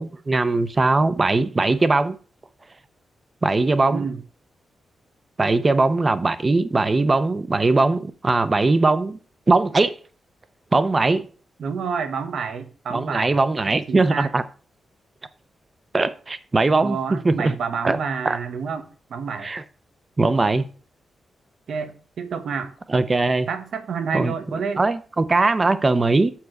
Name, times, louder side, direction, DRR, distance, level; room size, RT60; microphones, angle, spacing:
voice 1, 0.0-2.2 3.4-4.1 5.4-9.2 9.5-9.9 10.7-11.3 12.9-14.4 15.9-17.5 17.8-18.0 18.2-18.4 19.4-19.6 20.2-20.7 22.9-23.5 24.1-24.3 24.8-26.3, right 3 dB, 20° right, 0.6 m, -20 dB
voice 2, 3.9-4.2 11.6-13.4 13.7-14.3 16.7-19.5 21.7-22.7 23.5-24.8, right 5 dB, 65° right, 1.2 m, -29 dB
7.3 x 6.0 x 6.4 m
wide cardioid pair, 175°, 0 cm